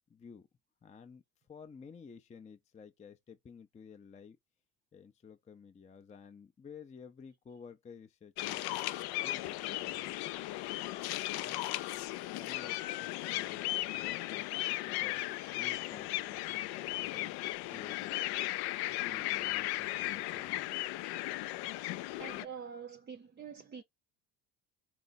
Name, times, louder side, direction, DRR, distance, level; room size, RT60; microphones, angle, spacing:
voice 1, 0.1-0.5 0.8-4.4 4.9-8.9 9.2-10.3 12.4-18.2 18.9-20.7, left 6 dB, 20° left, 0.5 m, -53 dB
sound 1, 8.4-22.5, left 17 dB, 75° left, 0.5 m, -36 dB
voice 2, 22.2-23.8, right 7 dB, 25° right, 0.6 m, -45 dB
4.1 x 2.5 x 3.9 m
supercardioid pair, 90°, 39 cm